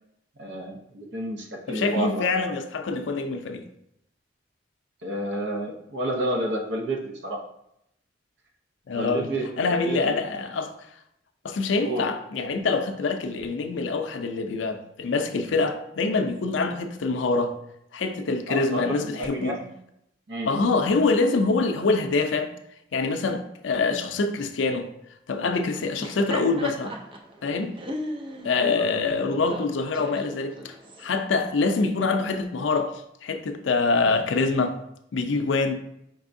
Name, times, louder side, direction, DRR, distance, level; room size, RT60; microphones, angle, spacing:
voice 1, 0.4-2.5 5.0-7.4 8.9-10.2 11.8-12.2 18.5-19.7 20.3-20.8 28.5-29.0, right 1 dB, 70° right, 0.7 m, -31 dB
voice 2, 1.7-3.6 8.9-9.3 9.6-10.7 11.4-17.5 17.9-19.6 20.5-22.5 22.9-24.9 25.3-26.9 27.4-27.8 28.4-32.9 33.2-34.8 35.1-35.8, left 3 dB, 85° left, 0.4 m, -25 dB
Laughter, 25.8-31.1, equal, 25° right, 0.5 m, -37 dB
5.3 x 3.4 x 2.6 m
head